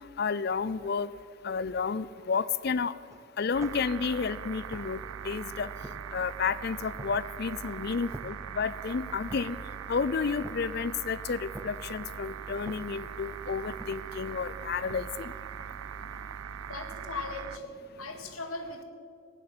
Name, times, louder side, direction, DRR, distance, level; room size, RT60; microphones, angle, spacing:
voice 1, 0.2-1.1 1.4-2.9 3.4-5.0 5.2-5.7 6.1-9.6 9.9-15.3, left 5 dB, 45° left, 17 dB, 0.4 m, -31 dB
sound 1, 3.1-15.0, right 1 dB, 15° right, 0.5 m, -51 dB
sound 2, 3.5-17.6, right 8 dB, 75° right, 0.4 m, -41 dB
sound 3, 4.8-18.3, equal, 35° right, 2.2 m, -55 dB
voice 2, 16.7-17.6 18.0-18.8, left 3 dB, 80° left, 5 dB, 1.8 m, -38 dB
15.0 x 10.0 x 7.4 m, 2.4 s
head